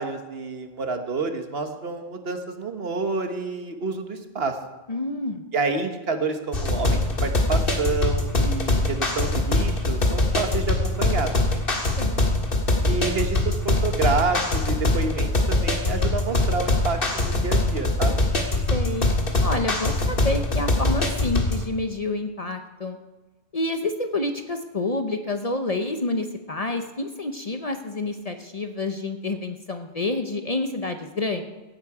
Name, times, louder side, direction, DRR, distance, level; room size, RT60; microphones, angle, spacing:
voice 1, 0.0-4.6 5.5-11.6 12.8-18.2, right 4 dB, 60° right, 6 dB, 1.4 m, -28 dB
voice 2, 4.9-5.5 12.0-12.2 18.7-19.1 19.4-23.0 23.5-31.4, left 2 dB, 40° left, 6 dB, 0.8 m, -28 dB
sound 1, 6.5-21.7, left 2 dB, 55° left, 1.8 m, -23 dB
16.5 x 9.1 x 4.8 m, 1.2 s
omnidirectional pair, 1.2 m